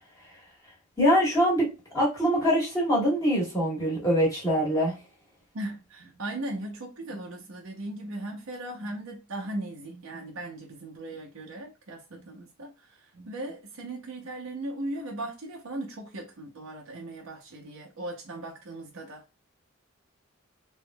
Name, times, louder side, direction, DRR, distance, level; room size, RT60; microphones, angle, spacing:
voice 1, 1.0-5.0, equal, 15° left, 1.4 m, -24 dB
voice 2, 5.5-19.2, right 1 dB, 75° right, 0.8 m, -38 dB
3.4 x 3.1 x 2.2 m
head